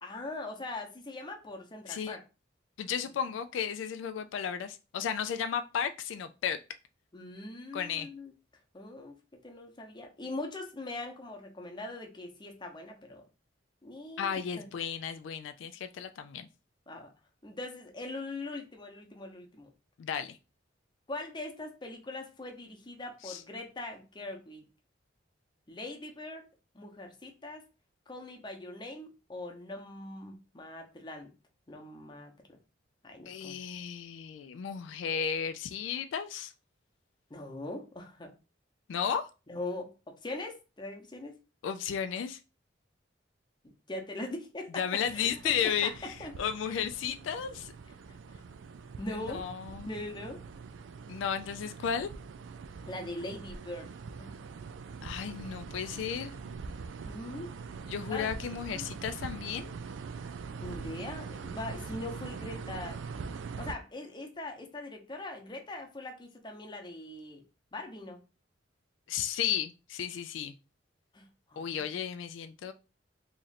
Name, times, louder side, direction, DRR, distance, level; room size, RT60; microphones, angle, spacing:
voice 1, 0.0-2.2 7.1-8.3 8.7-9.1 9.4-13.2 13.8-14.7 16.9-17.1 17.4-19.7 21.1-24.6 25.7-26.4 26.7-27.6 28.1-31.3 31.7-32.6 33.0-33.6 37.3-38.3 39.5-41.4 43.9-45.5 45.8-46.3 46.7-46.8 48.3-48.4 49.0-49.4 49.9-50.4 52.9-53.9 54.2-54.4 57.1-57.5 58.1-58.3 58.7-58.9 60.6-63.0 63.6-67.4 67.7-68.2 71.1-72.1, left 2 dB, 25° left, 2 dB, 0.7 m, -41 dB
voice 2, 2.8-6.6 7.7-8.1 14.2-16.5 20.0-20.4 23.2-23.4 33.3-36.5 38.9-39.3 41.6-42.4 44.8-47.7 49.1-49.9 51.1-52.1 55.0-56.3 57.9-59.7 69.1-70.5 71.6-72.7, left 8 dB, 85° left, 9 dB, 0.3 m, -34 dB
sound 1, 44.9-63.7, right 5 dB, 85° right, 0.4 m, -43 dB
3.0 x 2.5 x 4.0 m, 0.31 s
head